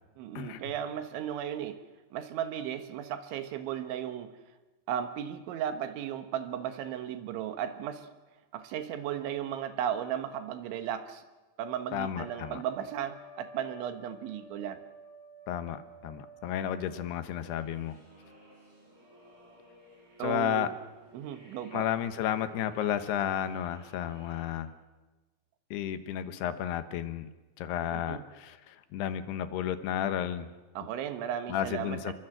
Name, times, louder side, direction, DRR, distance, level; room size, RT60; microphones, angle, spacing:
voice 1, 0.2-1.8 2.1-4.3 4.9-8.1 8.5-11.2 11.6-14.8 20.2-20.7 21.1-21.9 27.9-28.2 30.8-32.1, right 10 dB, 80° right, 8 dB, 3.7 m, -35 dB
voice 2, 11.9-12.6 15.5-18.0 20.2-20.7 21.7-24.7 25.7-27.3 27.6-30.5 31.5-32.1, left 10 dB, 70° left, 10 dB, 2.9 m, -32 dB
Trumpet, 12.2-17.2, right 2 dB, 5° left, 4.0 m, -51 dB
sound 1, 17.2-24.5, equal, 55° right, 9.5 m, -56 dB
26.5 x 23.5 x 7.9 m, 1.2 s
omnidirectional pair, 5.3 m